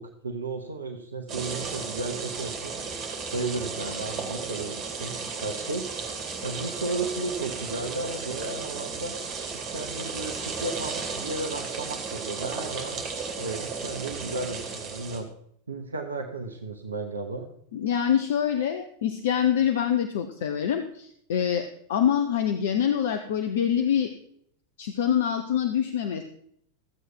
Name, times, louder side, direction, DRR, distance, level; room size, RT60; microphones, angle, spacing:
voice 1, 0.0-2.8 3.3-5.9 6.4-9.2 9.5-15.3 15.7-17.5, right 3 dB, 75° right, 4 dB, 1.0 m, -34 dB
sound 1, 1.3-15.2, right 5 dB, 30° right, 2.7 m, -34 dB
voice 2, 17.7-24.1 24.8-26.2, left 9 dB, 55° left, 7 dB, 0.8 m, -25 dB
14.0 x 8.2 x 4.6 m, 0.68 s
figure-of-eight pair, 90°, 0 cm